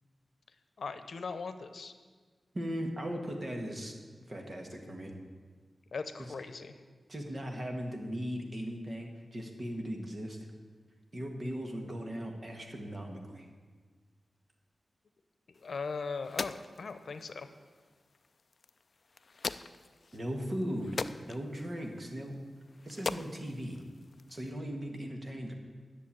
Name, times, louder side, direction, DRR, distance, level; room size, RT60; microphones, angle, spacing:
voice 1, 0.8-1.9 5.9-6.7 15.5-17.5, left 4 dB, 70° left, 10 dB, 0.8 m, -39 dB
voice 2, 2.5-3.9 4.3-5.1 6.2-6.3 7.1-10.4 11.1-13.5 20.1-22.4 22.8-23.8 24.3-25.5, equal, 35° right, 2 dB, 1.8 m, -38 dB
sound 1, 15.5-24.5, left 4 dB, 50° left, 0.4 m, -43 dB
10.5 x 7.0 x 8.7 m, 1.5 s
wide cardioid pair, 120°, 0 cm